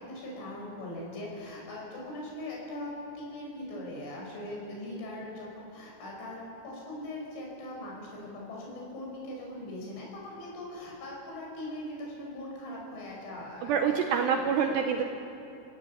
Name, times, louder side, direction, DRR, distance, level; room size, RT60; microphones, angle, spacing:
voice 1, 0.0-14.4 14.7-14.9, left 1 dB, 70° left, -2 dB, 7.9 m, -41 dB
voice 2, 13.6-15.0, right 7 dB, 75° right, 4 dB, 2.7 m, -26 dB
29.0 x 17.0 x 8.6 m, 2.8 s
omnidirectional pair, 5.8 m